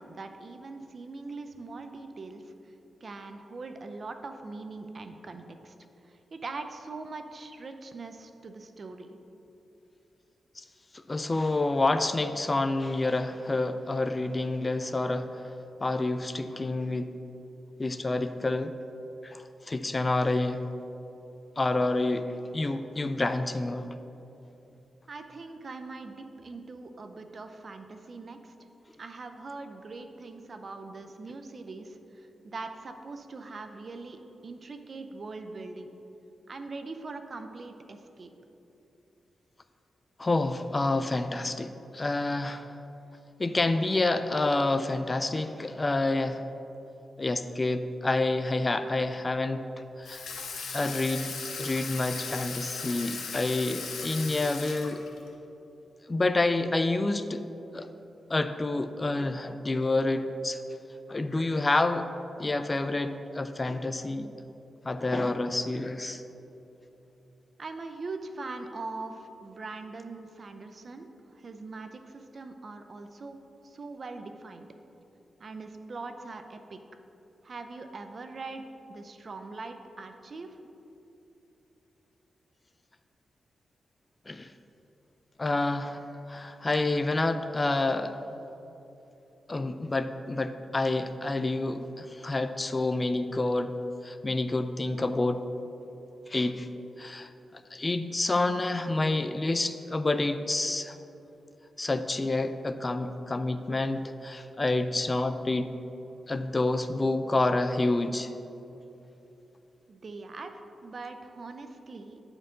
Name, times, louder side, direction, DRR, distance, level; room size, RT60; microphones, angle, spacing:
voice 1, 0.0-2.7 3.0-5.7 6.0-9.2 25.1-28.5 29.0-35.9 36.5-38.3 67.6-73.4 73.6-74.7 75.4-76.8 77.4-80.6 109.9-112.2, right 3 dB, 50° right, 7 dB, 0.5 m, -42 dB
voice 2, 10.9-15.5 15.8-17.1 17.8-18.8 19.2-20.7 21.6-23.9 40.2-42.7 43.4-46.5 47.2-49.7 50.0-50.2 50.7-55.0 56.1-57.4 57.7-57.9 58.3-60.6 61.1-62.1 62.4-64.3 64.8-66.2 84.3-84.5 85.4-88.1 89.5-93.8 94.0-95.5 96.3-96.7 97.0-101.0 101.8-105.7 106.3-108.3, left 2 dB, 30° left, 10 dB, 0.3 m, -28 dB
Water tap faucet / Sink (filling or washing), 50.0-55.3, left 5 dB, 85° left, 0.7 m, -38 dB
9.2 x 4.5 x 3.8 m, 3.0 s
cardioid pair, 70°, 0 cm